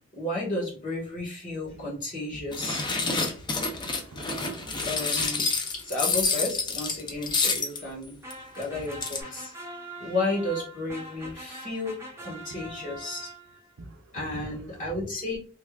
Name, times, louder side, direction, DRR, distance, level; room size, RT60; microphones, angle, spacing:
voice 1, 0.1-2.8 4.8-8.1 8.5-9.5 10.0-13.3 14.1-15.4, left 2 dB, 40° left, 1.6 m, -32 dB
sound 1, 2.5-7.8 8.3-8.4 8.6-8.7 8.9-9.2, left 4 dB, 25° left, 0.5 m, -28 dB
voice 2, 3.6-4.9 8.7-8.8 13.8-14.6, right 2 dB, 85° right, 0.6 m, -45 dB
sound 2, 8.2-13.8, right 1 dB, 15° right, 0.8 m, -43 dB
3.3 x 3.3 x 2.3 m
head